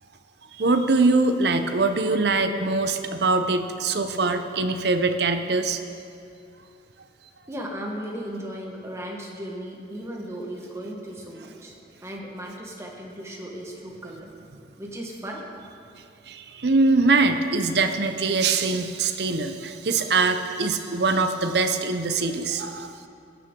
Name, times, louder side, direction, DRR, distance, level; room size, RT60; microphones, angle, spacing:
voice 1, 0.6-5.8 16.3-22.9, right 3 dB, 60° right, 8 dB, 0.7 m, -23 dB
voice 2, 7.5-11.7 12.0-14.3 14.8-15.5, equal, 15° right, 0 dB, 1.3 m, -36 dB
15.0 x 9.5 x 3.7 m, 2.4 s
head